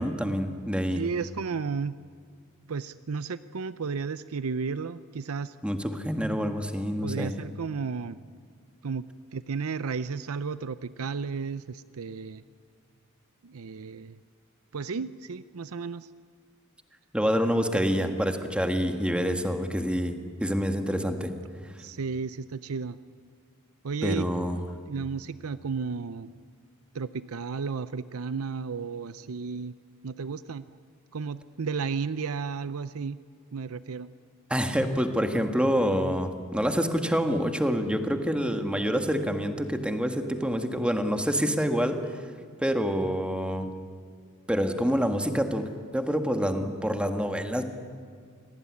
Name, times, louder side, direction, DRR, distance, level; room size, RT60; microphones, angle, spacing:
voice 1, 0.0-1.0 5.6-7.4 17.1-21.3 21.6-21.7 24.0-24.6 34.5-42.2 42.6-43.7 44.5-47.6, equal, 5° right, 6 dB, 1.8 m, -27 dB
voice 2, 0.9-2.0 2.7-5.5 7.0-8.2 8.8-9.1 9.3-12.4 13.4-14.2 14.7-16.1 21.8-23.0 23.8-24.2 24.9-26.3 26.9-29.7 30.0-30.7 31.1-33.2 33.5-34.1, right 5 dB, 85° right, 14 dB, 0.6 m, -33 dB
27.5 x 18.5 x 9.7 m, 2.1 s
head